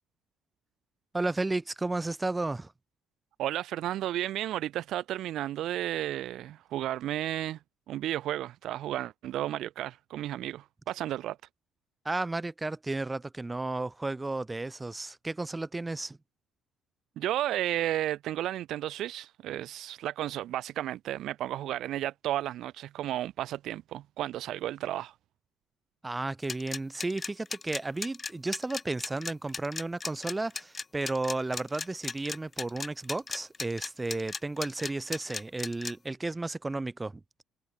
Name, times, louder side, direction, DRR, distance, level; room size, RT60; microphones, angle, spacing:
voice 1, 1.1-2.7 12.0-16.2 26.0-37.2, right 2 dB, 10° right, 1.1 m, -33 dB
voice 2, 3.4-7.6 7.9-11.4 17.2-25.1, right 13 dB, 65° right, 0.7 m, -33 dB
sound 1, 26.4-35.9, left 4 dB, 20° left, 0.7 m, -36 dB
cardioid pair, 150°, 0 cm